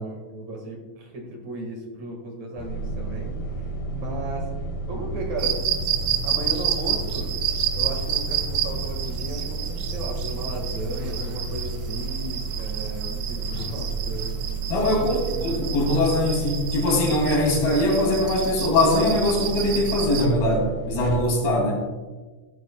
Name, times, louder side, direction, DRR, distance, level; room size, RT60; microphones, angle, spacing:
voice 1, 0.0-4.5 4.9-5.6 6.2-7.3 7.7-14.3 14.8-15.3, right 1 dB, 55° right, 1 dB, 2.7 m, -35 dB
sound 1, 2.6-21.3, right 3 dB, 90° left, 3.7 m, -32 dB
sound 2, 5.4-20.3, right 9 dB, 90° right, 3.1 m, -30 dB
voice 2, 14.7-21.8, left 1 dB, 70° left, -1 dB, 4.5 m, -22 dB
15.5 x 13.5 x 2.3 m, 1.3 s
omnidirectional pair, 4.5 m